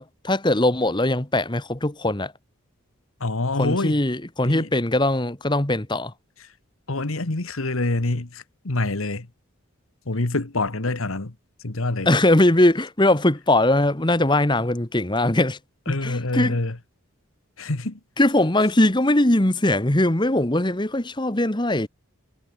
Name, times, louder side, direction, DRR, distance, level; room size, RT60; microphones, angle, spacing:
voice 1, 0.0-2.3 3.6-6.1 12.0-15.6 15.9-16.6 18.2-21.9, left 1 dB, 20° left, 1.4 m, -21 dB
voice 2, 3.2-4.0 4.4-4.7 6.9-9.3 10.1-11.3 11.6-12.1 15.9-16.8 17.6-18.0, left 2 dB, 75° left, 1.6 m, -26 dB
head